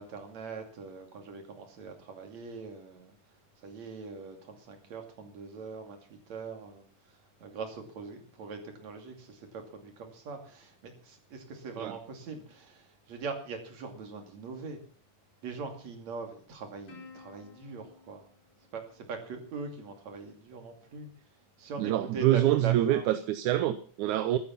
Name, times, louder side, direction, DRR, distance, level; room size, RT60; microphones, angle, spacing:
voice 1, 0.0-3.2 3.6-6.9 7.4-14.8 15.4-18.2 18.7-21.1 21.6-23.1, right 4 dB, 55° right, 3.8 m, -41 dB
Plucked string instrument, 16.9-19.6, left 5 dB, 55° left, 5.5 m, -54 dB
voice 2, 21.8-24.4, right 13 dB, 75° right, 2.1 m, -26 dB
14.5 x 12.5 x 5.8 m
omnidirectional pair, 3.8 m